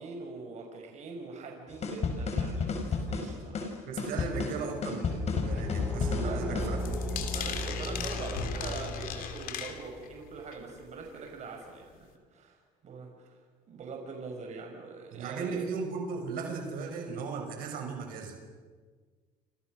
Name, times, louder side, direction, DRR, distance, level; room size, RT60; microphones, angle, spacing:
voice 1, 0.0-3.8 6.2-6.7 7.2-12.6 12.8-13.4 13.7-15.6, right 4 dB, 50° right, 2 dB, 5.3 m, -43 dB
sound 1, 1.8-6.8, left 4 dB, 45° left, 5.5 m, -32 dB
voice 2, 3.9-7.2 15.1-18.5, right 5 dB, 70° right, 4 dB, 6.2 m, -37 dB
Car / Engine, 5.1-9.7, left 1 dB, ahead, 7.7 m, -36 dB
sound 2, 6.8-10.2 10.5-10.8 11.3-11.4 11.6-11.7, left 9 dB, 70° left, 3.3 m, -38 dB
28.5 x 27.5 x 6.4 m, 1.5 s
cardioid pair, 100°, 15 cm